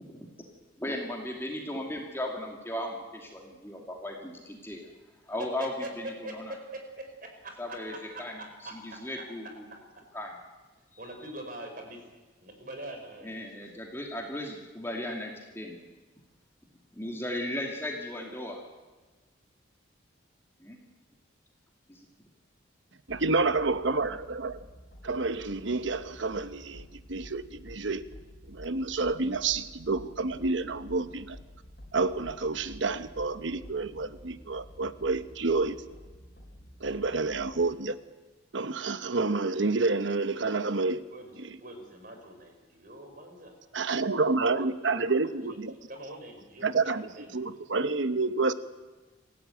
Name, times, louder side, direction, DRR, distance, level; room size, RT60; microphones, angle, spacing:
voice 1, 0.8-4.9 5.3-6.5 7.6-9.6 10.1-10.3 13.2-15.8 17.0-18.6 20.6-20.8 21.9-22.1, left 1 dB, 10° left, 2.5 m, -36 dB
voice 2, 5.6-5.9 6.2-7.5 7.9-8.0 8.4-8.5 8.9-9.0 11.0-12.0 12.4-13.4 41.1-41.3 41.6-43.5 44.4-44.5 44.8-45.2 45.7-47.6, right 1 dB, 45° right, 4.9 m, -43 dB
sound 1, 23.1-37.7, equal, 50° left, 4.1 m, -50 dB
voice 3, 23.1-24.7 25.0-28.0 28.5-31.4 31.9-35.8 36.8-38.0 38.5-41.0 41.4-41.6 43.7-45.7 46.6-48.5, right 3 dB, 75° right, 1.0 m, -29 dB
26.0 x 15.5 x 9.1 m
head